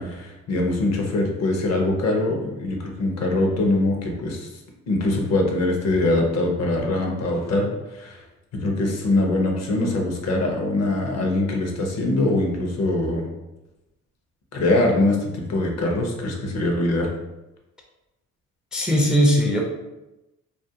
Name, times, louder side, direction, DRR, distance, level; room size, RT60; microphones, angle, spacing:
voice 1, 0.0-4.5 4.9-8.2 8.5-13.3 14.5-17.1, left 2 dB, 60° left, 1 dB, 0.7 m, -23 dB
voice 2, 18.7-19.6, equal, 5° right, -1 dB, 0.3 m, -19 dB
2.4 x 2.1 x 2.7 m, 0.98 s
cardioid pair, 90°, 30 cm